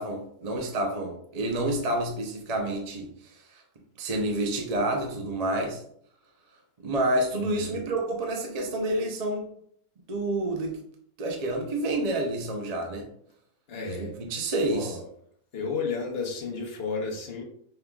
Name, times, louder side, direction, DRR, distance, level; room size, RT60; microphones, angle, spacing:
voice 1, 0.0-3.1 4.0-5.8 6.8-9.5 10.1-10.8 11.2-13.0 13.8-15.0, right 1 dB, 40° right, 2 dB, 0.6 m, -28 dB
voice 2, 7.3-7.8 13.7-14.1 14.7-15.0 15.5-17.4, left 4 dB, 50° left, 0 dB, 1.0 m, -32 dB
5.6 x 3.5 x 2.3 m, 0.66 s
omnidirectional pair, 1.5 m